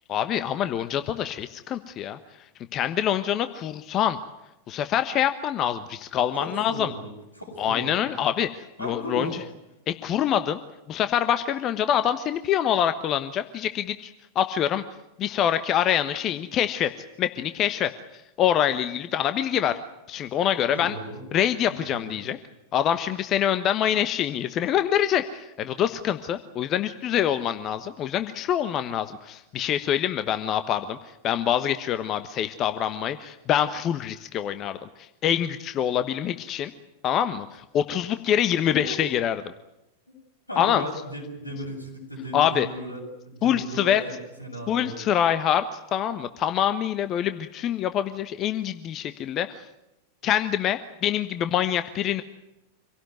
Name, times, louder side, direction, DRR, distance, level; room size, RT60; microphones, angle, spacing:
voice 1, 0.1-2.2 2.7-4.2 4.7-6.9 7.6-9.3 9.9-10.6 10.9-14.8 15.2-16.9 17.2-17.9 18.4-19.8 20.1-21.0 21.3-22.4 22.7-31.0 31.2-36.7 37.0-39.4 40.6-40.8 42.3-42.7 43.4-44.0 44.7-49.6 50.2-52.2, left 10 dB, 35° left, 11 dB, 1.2 m, -25 dB
voice 2, 6.3-7.1 7.4-8.1 8.8-9.3 20.6-21.2 21.6-22.2 38.7-39.0 40.5-44.9, left 1 dB, 85° left, 0 dB, 7.6 m, -36 dB
26.5 x 17.5 x 9.3 m, 0.90 s
figure-of-eight pair, 90°, 0 cm